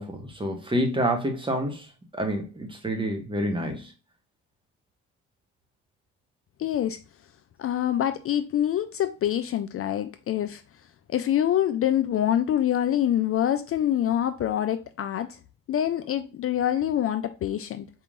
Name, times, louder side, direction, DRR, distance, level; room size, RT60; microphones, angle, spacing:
voice 1, 0.0-1.9 2.1-3.9, equal, 15° right, 1.1 m, -28 dB
voice 2, 6.6-7.0 7.6-10.6 11.1-15.4 15.7-17.9, left 11 dB, 50° left, 0.4 m, -25 dB
4.3 x 3.6 x 2.4 m
cardioid pair, 90°, 30 cm